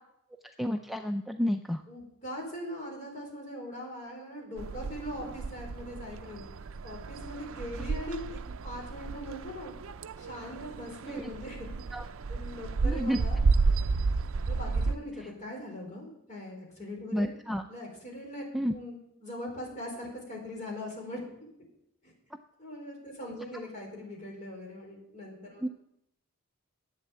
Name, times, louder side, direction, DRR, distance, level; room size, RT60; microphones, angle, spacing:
voice 1, 0.6-1.8 11.1-11.3 11.9-12.1 12.8-13.2 17.1-17.7 18.5-18.7 25.6-25.7, equal, ahead, 4 dB, 0.4 m, -30 dB
voice 2, 1.9-6.4 6.8-9.7 10.2-11.7 12.3-13.4 14.5-17.3 17.7-18.4 18.7-18.9 19.2-21.2 22.0-22.1 22.6-25.6, left 1 dB, 35° left, -1 dB, 4.5 m, -41 dB
sound 1, 4.6-15.0, right 4 dB, 65° right, 0.5 m, -32 dB
11.0 x 8.4 x 8.3 m, 0.78 s
head